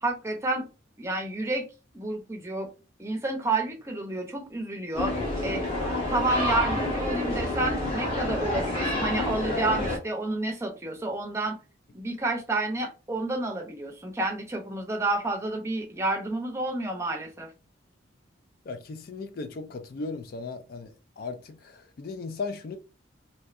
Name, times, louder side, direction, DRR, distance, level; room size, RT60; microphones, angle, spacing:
voice 1, 0.0-0.6 1.0-1.6 1.9-2.7 3.0-5.2 5.4-5.6 6.1-11.6 11.9-17.5, right 2 dB, 15° right, 0.6 m, -30 dB
sound 1, 4.9-10.0, left 1 dB, 30° left, 1.0 m, -28 dB
voice 2, 18.7-22.8, left 4 dB, 50° left, 0.3 m, -37 dB
3.2 x 2.6 x 2.4 m
head